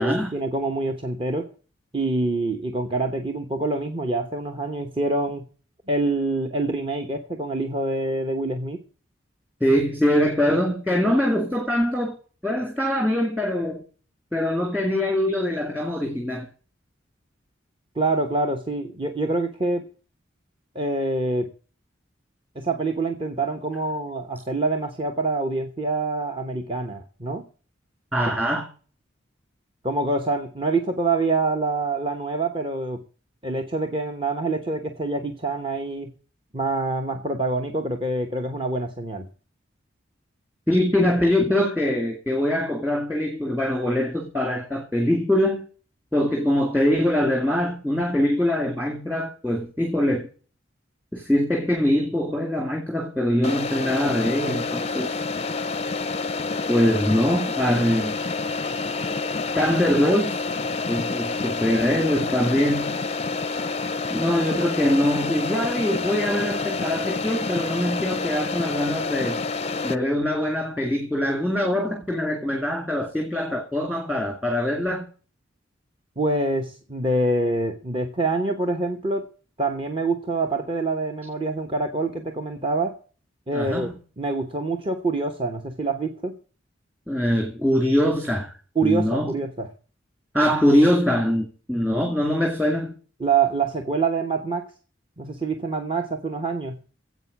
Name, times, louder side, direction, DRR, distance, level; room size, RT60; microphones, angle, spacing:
voice 1, 0.0-1.5 1.9-5.5 5.9-8.8 17.9-19.9 20.7-21.5 22.5-27.4 29.8-33.0 33.4-36.1 36.5-39.3 76.2-79.3 79.6-83.0 83.5-83.9 84.2-86.4 88.7-89.7 93.2-94.7 95.2-96.8, right 3 dB, 25° right, 1.0 m, -26 dB
voice 2, 9.6-12.2 12.4-13.8 14.3-16.5 28.1-28.7 40.7-45.7 46.1-50.3 51.1-55.2 56.7-58.2 59.5-60.4 60.9-63.0 64.1-69.4 69.8-75.1 83.5-83.9 87.1-88.5 88.8-89.3 90.3-92.9, left 1 dB, 10° right, 2.2 m, -23 dB
sound 1, 53.4-70.0, left 4 dB, 30° left, 0.5 m, -28 dB
10.5 x 8.1 x 8.4 m
head